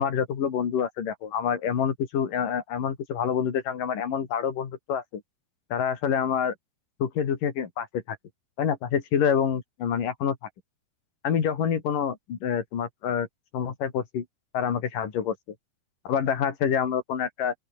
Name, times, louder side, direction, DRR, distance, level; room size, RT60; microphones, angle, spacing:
voice 1, 0.0-5.2 5.7-6.5 7.0-8.2 8.6-10.4 11.2-13.3 13.5-14.3 14.5-15.4 16.1-17.5, left 8 dB, 90° left, 4.5 m, -27 dB
open air
omnidirectional pair, 3.7 m